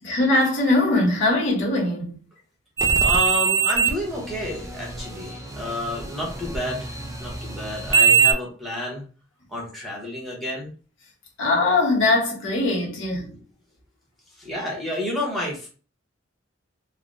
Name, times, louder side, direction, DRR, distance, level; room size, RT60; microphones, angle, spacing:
voice 1, 0.0-2.2 11.4-13.3, left 2 dB, 85° left, 1.1 m, -21 dB
sound 1, 2.8-8.3, right 6 dB, 15° right, 0.4 m, -23 dB
voice 2, 3.0-6.9 7.2-9.1 9.5-10.7 13.1-13.3 14.4-15.7, left 1 dB, ahead, 0.9 m, -30 dB
3.2 x 2.1 x 2.5 m
head